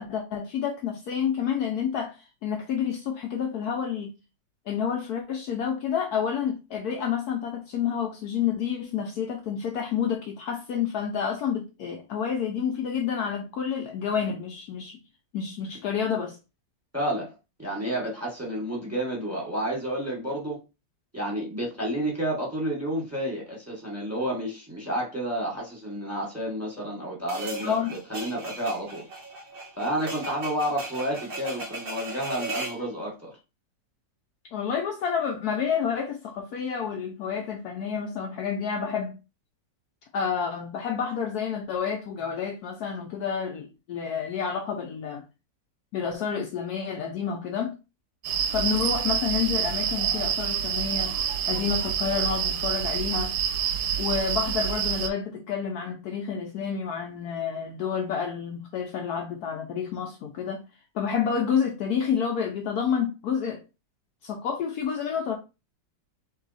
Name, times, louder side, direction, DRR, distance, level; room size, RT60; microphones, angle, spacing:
voice 1, 0.0-4.1 4.7-15.0 15.3-16.4 27.6-27.9 34.5-39.2 40.1-45.2 45.9-47.7 48.5-51.2 51.5-53.3 54.0-60.6 60.9-63.6 64.2-65.4, left 7 dB, 70° left, 1.1 m, -29 dB
voice 2, 16.9-17.3 17.6-20.6 21.1-29.0 29.8-33.3, right 1 dB, 10° right, 1.3 m, -30 dB
sound 1, 27.3-32.8, right 2 dB, 40° right, 0.8 m, -37 dB
sound 2, 48.2-55.1, right 9 dB, 75° right, 1.0 m, -27 dB
3.8 x 2.7 x 4.0 m
omnidirectional pair, 1.9 m